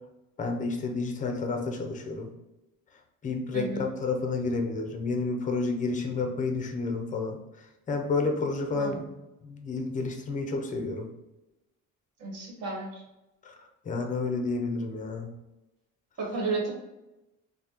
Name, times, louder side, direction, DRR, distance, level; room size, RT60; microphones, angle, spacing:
voice 1, 0.4-2.3 3.2-7.4 7.9-9.0 9.4-11.1 13.4-13.5 13.9-15.3, left 3 dB, 25° left, 4 dB, 0.5 m, -30 dB
voice 2, 3.5-3.8 8.7-9.0 12.2-13.0 16.2-16.7, right 3 dB, 50° right, -1 dB, 1.4 m, -32 dB
5.3 x 2.1 x 2.9 m, 0.97 s
cardioid pair, 160°, 32 cm